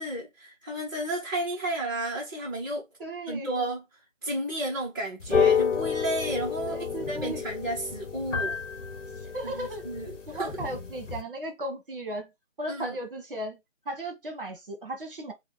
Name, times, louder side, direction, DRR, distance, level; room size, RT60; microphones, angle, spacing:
voice 1, 0.0-2.9 3.3-3.8 4.2-8.6 9.4-10.5 12.7-13.0, right 1 dB, 15° right, 0.9 m, -32 dB
voice 2, 3.0-3.5 6.7-7.4 9.2-9.8 10.3-12.3 12.6-13.6 13.8-15.3, right 1 dB, 45° right, 1.4 m, -36 dB
sound 1, 5.2-11.2, left 6 dB, 65° left, 1.1 m, -29 dB
3.2 x 2.3 x 4.0 m
figure-of-eight pair, 165°, 39 cm